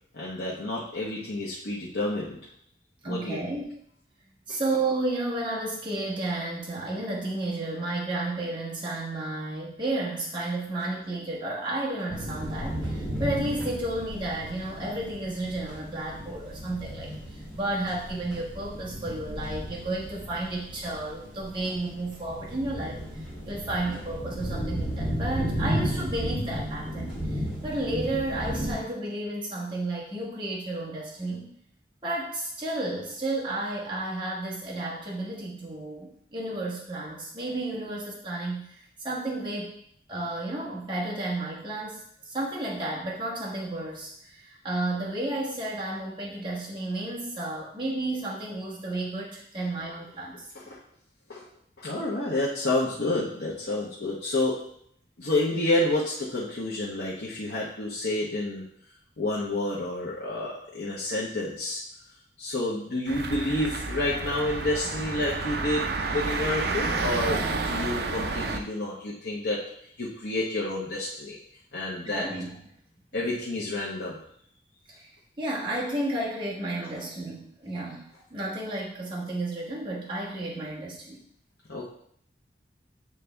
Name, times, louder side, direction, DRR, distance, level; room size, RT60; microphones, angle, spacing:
voice 1, 0.1-2.4 3.1-3.4 50.5-50.8 51.3-51.4 51.8-54.5 55.2-58.6 59.2-61.8 62.4-69.6 70.0-71.4 71.7-72.3 73.1-74.2 81.7-81.9, left 2 dB, 80° left, -5 dB, 1.0 m, -29 dB
voice 2, 3.0-3.8 4.5-31.5 32.0-39.8 40.1-50.5 72.0-72.7 74.9-75.1 75.4-81.2, right 2 dB, 25° right, -5 dB, 1.3 m, -32 dB
sound 1, 12.1-28.7, equal, 5° right, 2.4 m, -34 dB
sound 2, 63.1-68.6, right 3 dB, 60° right, 0.5 m, -30 dB
8.3 x 3.3 x 3.4 m, 0.68 s
head